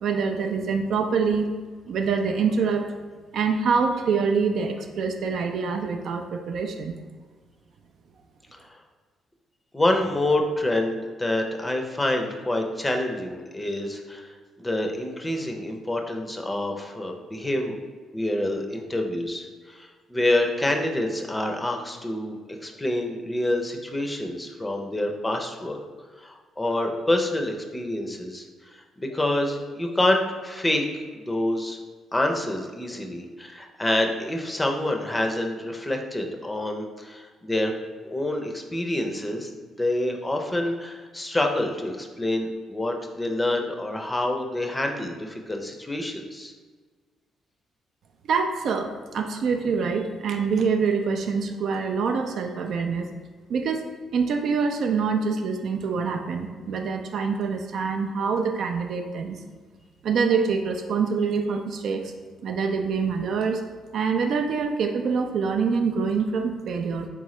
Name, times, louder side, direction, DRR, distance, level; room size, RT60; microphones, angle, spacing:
voice 1, 0.0-1.5 1.9-2.9 3.3-7.0 48.3-53.1 53.5-53.8 54.1-59.4 60.0-62.1 62.4-63.6 63.9-67.1, right 5 dB, 70° right, 4 dB, 0.3 m, -25 dB
voice 2, 8.5-8.8 9.7-17.8 18.1-25.8 26.2-30.9 31.1-31.8 32.1-37.7 38.0-46.5, left 1 dB, 15° left, 3 dB, 0.5 m, -27 dB
3.7 x 3.5 x 3.1 m, 1.5 s
cardioid pair, 90°, 0 cm